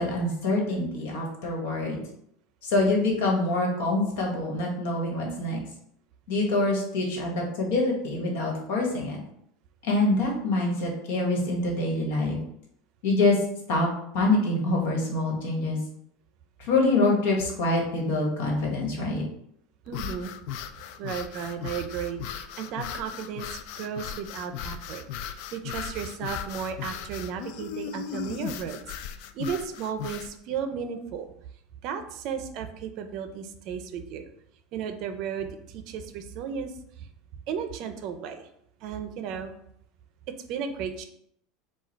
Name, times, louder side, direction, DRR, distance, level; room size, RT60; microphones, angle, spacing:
voice 1, 0.0-2.0 2.6-5.6 6.3-9.2 9.8-12.4 13.0-13.4 13.7-15.8 16.6-19.2, left 2 dB, 75° left, 0 dB, 1.5 m, -25 dB
sound 1, 19.9-30.3, left 9 dB, 60° left, 0.3 m, -37 dB
voice 2, 19.9-20.3 21.0-31.3 31.8-34.3 34.7-37.1 37.5-38.5 38.8-39.5 40.5-41.0, right 7 dB, 50° right, 8 dB, 0.5 m, -34 dB
4.8 x 2.3 x 4.5 m, 0.72 s
supercardioid pair, 155°, 0 cm